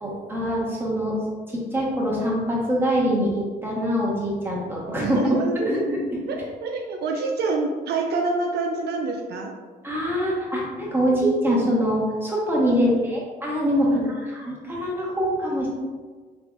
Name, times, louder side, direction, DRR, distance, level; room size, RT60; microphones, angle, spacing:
voice 1, 0.0-1.2 1.5-5.2 5.6-6.0 9.8-13.9 14.2-15.7, equal, 10° right, -5 dB, 1.2 m, -24 dB
voice 2, 5.0-5.9 6.3-9.5 12.6-13.1 13.8-14.2, right 3 dB, 70° right, 2 dB, 0.4 m, -27 dB
3.6 x 3.3 x 2.5 m, 1.5 s
cardioid pair, 85°, 17 cm